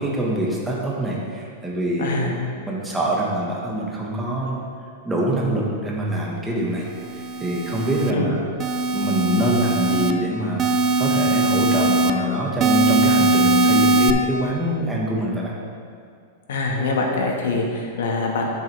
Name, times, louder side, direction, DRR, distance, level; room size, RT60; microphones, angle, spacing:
voice 1, 0.0-2.3 2.7-4.6 5.0-6.8 7.4-8.4 8.9-10.6 11.0-15.5, right 1 dB, 5° right, -4 dB, 1.4 m, -24 dB
voice 2, 2.0-2.3 8.1-8.4 16.5-18.5, left 3 dB, 80° left, 0 dB, 1.5 m, -24 dB
sound 1, 7.0-8.1 8.6-10.1 10.6-12.1 12.6-14.1, right 2 dB, 25° right, 0.4 m, -20 dB
9.0 x 7.6 x 3.4 m, 2.3 s
supercardioid pair, 150°, 0 cm